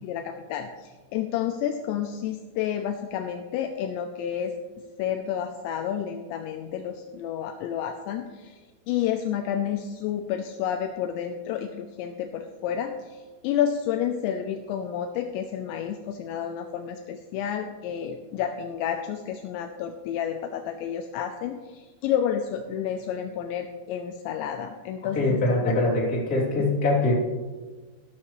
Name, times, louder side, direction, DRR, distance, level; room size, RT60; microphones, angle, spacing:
voice 1, 0.0-4.5 5.0-8.6 8.9-25.7 26.6-26.7, left 9 dB, 80° left, 5 dB, 2.7 m, -30 dB
voice 2, 25.1-27.1, left 2 dB, 20° left, -6 dB, 2.9 m, -23 dB
13.0 x 13.0 x 3.2 m, 1.3 s
omnidirectional pair, 5.5 m